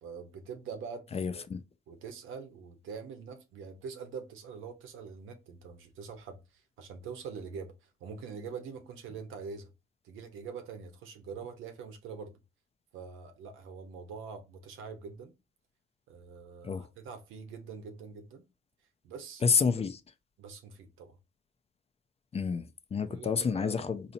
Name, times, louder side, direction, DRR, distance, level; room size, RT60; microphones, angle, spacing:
voice 1, 0.0-1.0 1.9-9.7 10.0-12.4 12.9-15.3 16.1-18.4 19.0-19.4 20.4-21.2 23.1-23.9, right 5 dB, 85° right, 0.9 m, -44 dB
voice 2, 1.1-1.6 16.6-16.9 19.4-20.0 22.3-24.1, left 5 dB, 30° left, 0.5 m, -29 dB
4.0 x 2.8 x 2.6 m
cardioid pair, 90°, 20 cm